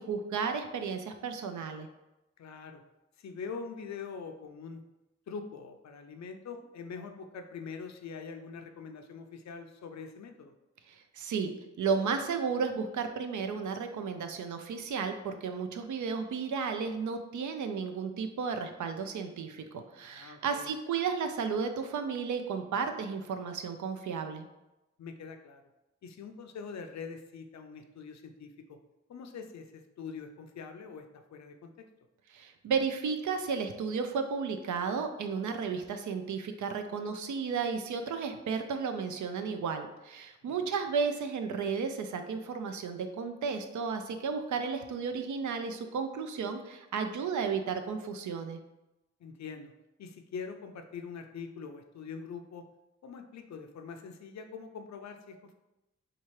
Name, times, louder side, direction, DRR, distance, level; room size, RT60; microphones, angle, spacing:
voice 1, 0.0-1.9 10.9-11.5 11.8-24.5 32.3-48.6, right 5 dB, 85° right, 7 dB, 0.5 m, -33 dB
voice 2, 2.4-2.8 3.2-4.8 5.3-10.5 20.0-20.7 25.0-25.6 26.0-28.8 29.1-31.8 40.5-40.6 49.2-49.7 50.0-52.7 53.0-55.5, left 5 dB, 70° left, 7 dB, 0.5 m, -44 dB
4.2 x 2.4 x 3.1 m, 0.97 s
cardioid pair, 60°, 29 cm